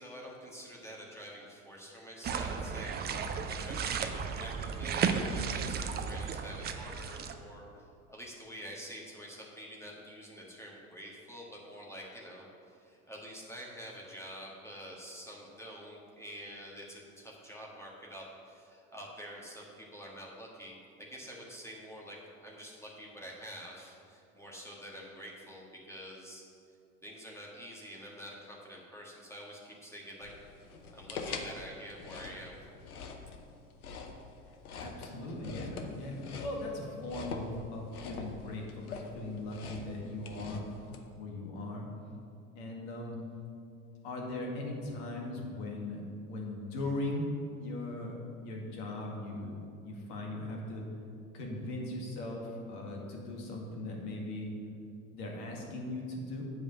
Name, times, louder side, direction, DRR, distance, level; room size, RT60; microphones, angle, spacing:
voice 1, 0.0-2.9 3.2-26.4 27.0-30.3 30.9-32.6, equal, 5° left, -3 dB, 1.6 m, -47 dB
sound 1, 2.2-7.3, right 6 dB, 25° right, 0.5 m, -34 dB
sound 2, 30.2-41.0, left 4 dB, 75° left, 0.9 m, -44 dB
voice 2, 34.8-40.7 41.1-41.9 42.6-43.2 44.0-47.3 47.6-48.2 48.4-50.8 51.3-54.5 55.1-56.4, left 2 dB, 55° left, 0 dB, 2.0 m, -39 dB
7.9 x 5.0 x 7.4 m, 2.5 s
figure-of-eight pair, 75°, 43 cm